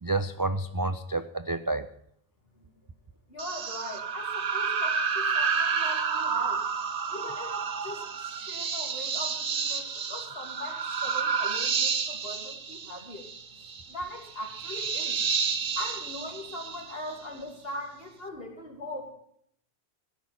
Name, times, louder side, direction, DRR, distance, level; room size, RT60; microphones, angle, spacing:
voice 1, 0.0-1.9 7.1-7.2, right 2 dB, 35° right, 10 dB, 0.3 m, -29 dB
voice 2, 3.3-6.6 7.1-8.1 8.4-13.3 13.9-15.2 15.8-19.1, left 1 dB, 60° left, 0 dB, 3.0 m, -40 dB
sound 1, 3.4-17.3, right 6 dB, 90° right, 1.3 m, -30 dB
15.5 x 6.0 x 9.0 m, 0.69 s
omnidirectional pair, 1.1 m